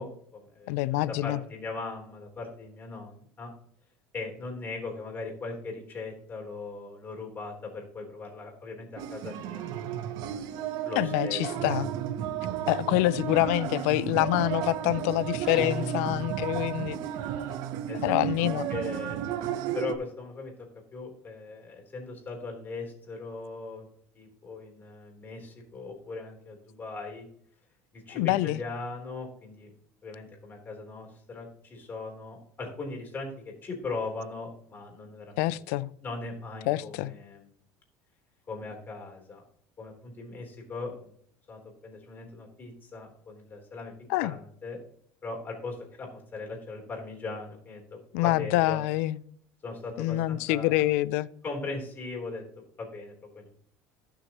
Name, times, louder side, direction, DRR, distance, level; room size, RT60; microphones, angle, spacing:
voice 1, 0.0-3.5 4.1-11.4 17.9-19.3 19.7-23.9 24.1-27.2 27.9-29.7 30.0-37.5 38.5-39.4 39.8-41.1 41.5-43.9 44.2-44.8 45.2-48.8 49.6-50.9 51.4-53.5, left 3 dB, 25° left, 3.6 m, -39 dB
voice 2, 0.7-1.4 11.0-11.9 12.7-17.0 18.0-18.7 28.2-28.6 35.4-35.9 36.7-37.1 44.1-44.3 48.1-49.2 50.0-51.3, left 17 dB, 80° left, 0.5 m, -26 dB
sound 1, 9.0-19.9, right 10 dB, 60° right, 0.8 m, -33 dB
sound 2, 15.5-17.2, right 1 dB, 10° right, 1.4 m, -38 dB
16.5 x 6.3 x 3.0 m
cardioid pair, 135°, 8 cm